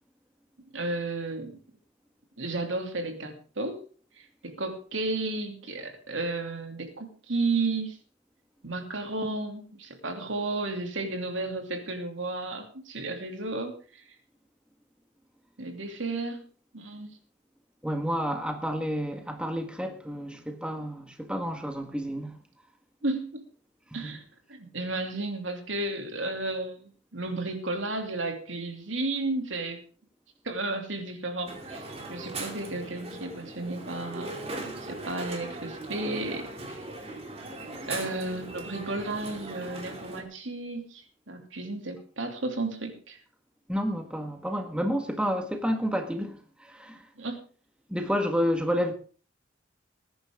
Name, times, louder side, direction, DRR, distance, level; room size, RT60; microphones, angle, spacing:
voice 1, 0.7-1.6 2.4-3.8 4.2-8.0 8.6-14.0 15.6-16.5 16.7-17.2 23.0-23.4 23.9-24.2 24.5-29.8 30.4-36.9 37.9-43.2 47.2-47.4, right 2 dB, 85° right, 2.9 m, -33 dB
voice 2, 17.8-22.4 24.0-24.2 43.7-47.1 47.9-48.9, equal, 5° right, 1.7 m, -30 dB
Crowd, 31.5-40.2, right 2 dB, 35° right, 2.8 m, -39 dB
20.0 x 10.0 x 3.7 m
head